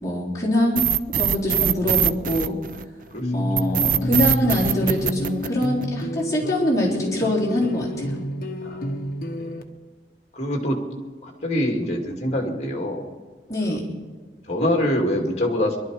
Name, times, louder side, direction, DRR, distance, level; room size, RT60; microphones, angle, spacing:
voice 1, 0.0-0.9 1.2-2.6 3.3-8.1 13.5-13.8, left 1 dB, 20° left, -6 dB, 3.8 m, -24 dB
sound 1, 0.8-3.0 3.6-6.0, right 10 dB, 50° right, 0.4 m, -22 dB
voice 2, 1.7-2.1 3.1-3.3 8.6-8.9 9.4-9.6 10.3-10.8 11.2-13.0 13.6-13.8 14.5-15.8, left 1 dB, 40° left, 2 dB, 2.4 m, -25 dB
sound 2, 3.2-9.6, left 1 dB, 55° left, 1.0 m, -29 dB
23.0 x 12.0 x 4.8 m, 1.4 s
head